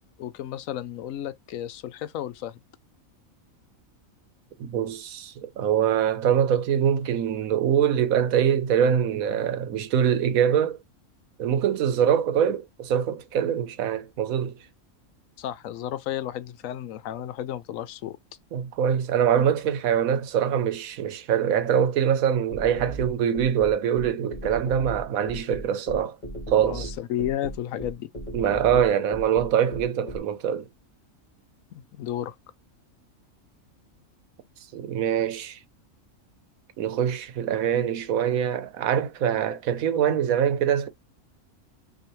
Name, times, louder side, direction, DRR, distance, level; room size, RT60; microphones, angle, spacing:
voice 1, 0.2-2.6 15.4-18.2 26.6-28.1 31.7-32.3, left 11 dB, 75° left, 1.0 m, -33 dB
voice 2, 4.6-10.8 11.4-14.6 18.5-26.2 26.5-26.9 28.3-30.7 34.7-35.6 36.8-40.9, right 9 dB, 85° right, 1.2 m, -24 dB
sound 1, 22.5-30.2, right 1 dB, 40° left, 1.9 m, -36 dB
5.6 x 2.8 x 3.1 m
omnidirectional pair, 1.4 m